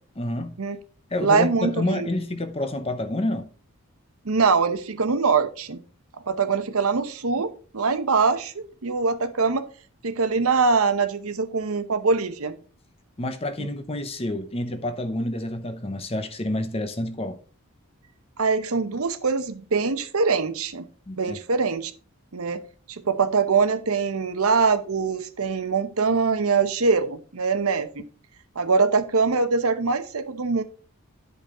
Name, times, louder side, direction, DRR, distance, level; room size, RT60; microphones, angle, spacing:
voice 1, 0.2-0.6 1.1-3.5 13.2-17.4 21.1-21.4, left 1 dB, 25° left, 0.8 m, -28 dB
voice 2, 1.2-2.1 4.2-5.8 6.3-9.7 10.0-12.5 13.6-13.7 18.4-20.9 21.2-21.9 22.3-22.6 22.9-28.1 28.6-30.6, right 4 dB, 70° right, 0.8 m, -23 dB
10.5 x 5.3 x 3.7 m
head